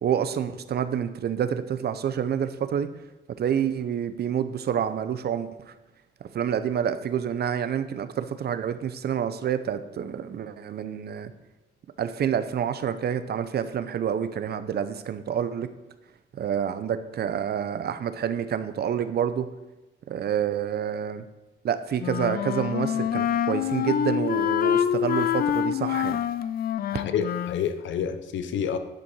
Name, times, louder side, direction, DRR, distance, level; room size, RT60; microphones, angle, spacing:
voice 1, 0.0-2.9 3.4-5.5 6.3-11.3 12.0-15.7 16.3-19.5 20.1-21.2 21.6-26.2, right 8 dB, 55° right, 0.6 m, -28 dB
Wind instrument woodwind instrument, 22.0-27.6, left 9 dB, 50° left, 0.4 m, -26 dB
voice 2, 26.9-28.8, left 8 dB, 70° left, 0.8 m, -28 dB
10.0 x 5.3 x 4.7 m
cardioid pair, 90°, 20 cm